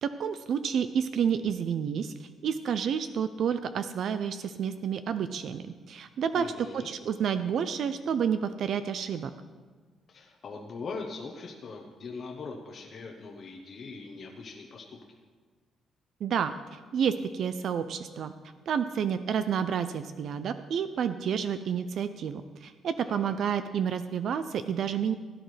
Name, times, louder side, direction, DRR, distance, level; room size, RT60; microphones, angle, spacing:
voice 1, 0.0-2.1 2.4-9.3 16.2-18.3 18.7-25.1, right 7 dB, 55° right, 11 dB, 0.4 m, -30 dB
voice 2, 6.3-6.9 10.1-15.0 23.0-23.3, left 4 dB, 40° left, 0 dB, 0.9 m, -41 dB
16.5 x 10.5 x 3.2 m, 1.5 s
cardioid pair, 160°, 0 cm